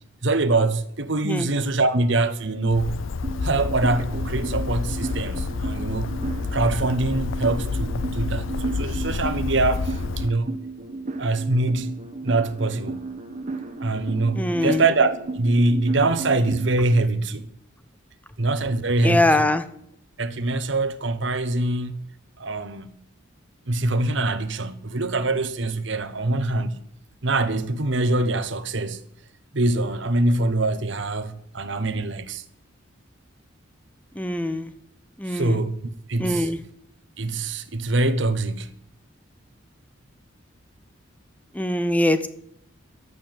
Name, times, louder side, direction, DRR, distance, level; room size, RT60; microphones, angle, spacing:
voice 1, 0.2-3.0 3.4-6.1 6.5-10.5 11.2-11.9 12.2-13.1 13.8-17.5 18.4-19.5 20.2-22.0 22.4-22.9 23.7-26.8 27.2-29.0 29.5-32.4 35.3-35.7 36.1-36.5 37.2-38.7, right 2 dB, 60° right, 1.2 m, -24 dB
Bird, 2.7-10.3, left 4 dB, 70° left, 0.5 m, -29 dB
sound 1, 3.2-17.0, right 3 dB, 35° right, 1.3 m, -34 dB
voice 2, 14.3-14.8 19.0-19.6 34.2-34.7 35.2-35.6 36.2-36.6 41.5-42.3, left 1 dB, 5° left, 0.8 m, -22 dB
12.0 x 8.2 x 9.0 m
head